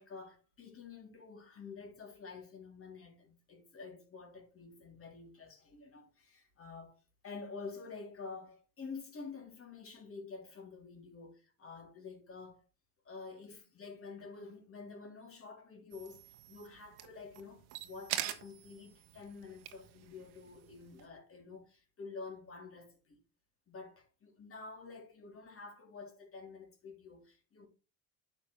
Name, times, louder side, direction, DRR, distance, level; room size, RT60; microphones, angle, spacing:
voice 1, 0.0-12.6 13.0-16.2 16.5-23.2 23.7-27.7, left 4 dB, 35° left, 3.3 m, -49 dB
sound 1, 15.9-21.0, right 13 dB, 90° right, 1.2 m, -45 dB
9.8 x 6.0 x 3.3 m
supercardioid pair, 100°, 37 cm